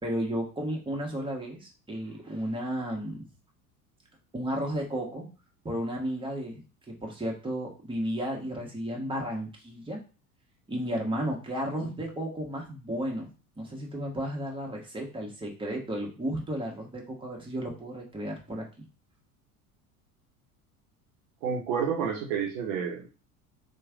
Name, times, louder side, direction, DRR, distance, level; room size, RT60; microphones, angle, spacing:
voice 1, 0.0-3.3 4.3-5.3 5.6-10.0 10.7-13.3 13.6-18.9, equal, 10° right, -1 dB, 1.2 m, -33 dB
voice 2, 21.4-23.1, right 7 dB, 70° right, 2 dB, 0.8 m, -30 dB
3.1 x 2.3 x 3.6 m, 0.34 s
hypercardioid pair, 75°, 45 cm